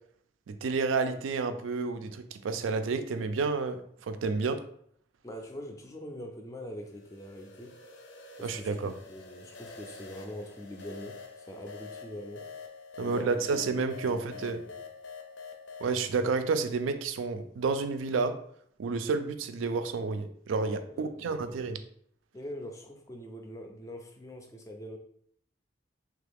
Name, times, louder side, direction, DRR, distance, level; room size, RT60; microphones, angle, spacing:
voice 1, 0.5-3.8 4.1-4.6 8.4-8.9 13.0-14.6 15.8-18.3 18.8-21.8, right 4 dB, 90° right, 0.4 m, -30 dB
voice 2, 5.2-7.8 8.4-12.5 13.0-13.4 13.7-13.8 14.1-14.8 20.9-21.5 22.3-25.0, left 1 dB, 15° left, 0.3 m, -43 dB
sound 1, 6.8-15.9, left 4 dB, 75° left, 0.5 m, -47 dB
3.3 x 2.3 x 3.4 m
head